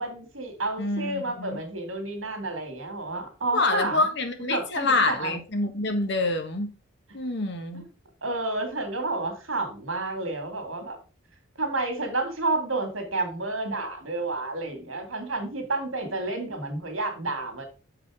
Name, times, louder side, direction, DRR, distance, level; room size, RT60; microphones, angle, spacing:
voice 1, 0.0-4.1 4.5-5.3 7.7-7.9 8.2-11.0 11.6-17.6, right 2 dB, 80° right, 6 dB, 2.2 m, -30 dB
voice 2, 0.8-1.6 3.5-6.7 7.1-7.8, left 3 dB, 60° left, 6 dB, 1.4 m, -26 dB
6.7 x 5.0 x 4.9 m, 0.33 s
head